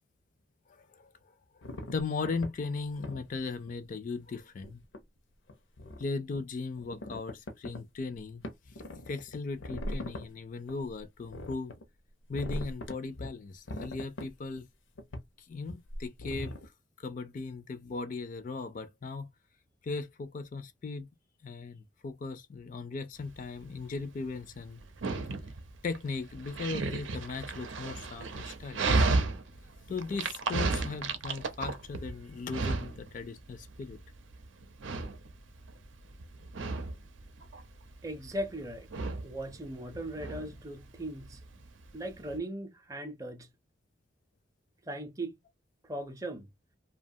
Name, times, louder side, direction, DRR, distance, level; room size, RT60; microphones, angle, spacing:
voice 1, 0.7-1.1 1.9-4.8 6.0-8.4 9.1-11.7 12.3-14.7 15.5-16.5 17.0-19.3 19.8-21.1 21.4-24.8 25.8-29.1 29.9-34.0, left 4 dB, 45° left, 0.3 m, -37 dB
sound 1, 1.6-2.5 3.0-3.3 3.7-3.8 4.6-5.0 5.5-6.0 6.3-6.4 6.8-7.8 8.1-8.2 8.4-10.2 10.7-11.8 12.3-13.3 13.7-14.6 15.0-15.2 15.7-16.7, left 1 dB, 85° left, 0.6 m, -40 dB
Dog, 23.2-42.4, right 3 dB, 85° right, 0.6 m, -34 dB
voice 2, 38.0-38.9 39.2-41.4 41.9-43.5 44.9-45.4 45.9-46.5, right 1 dB, 20° right, 0.5 m, -38 dB
2.7 x 2.2 x 2.6 m
head